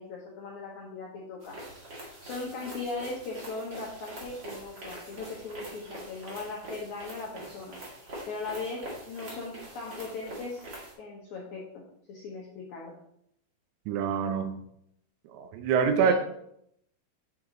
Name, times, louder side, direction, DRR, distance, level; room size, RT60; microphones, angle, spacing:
voice 1, 0.0-1.6 2.2-7.8 8.3-10.6 11.0-11.8 12.1-12.9 16.0-16.1, left 3 dB, 80° left, -3 dB, 1.7 m, -38 dB
sound 1, 1.4-10.9, right 1 dB, 50° right, 1.2 m, -44 dB
voice 2, 13.9-14.5 15.3-16.1, right 7 dB, 90° right, 7 dB, 3.0 m, -25 dB
7.7 x 4.7 x 3.8 m, 0.74 s
omnidirectional pair, 4.9 m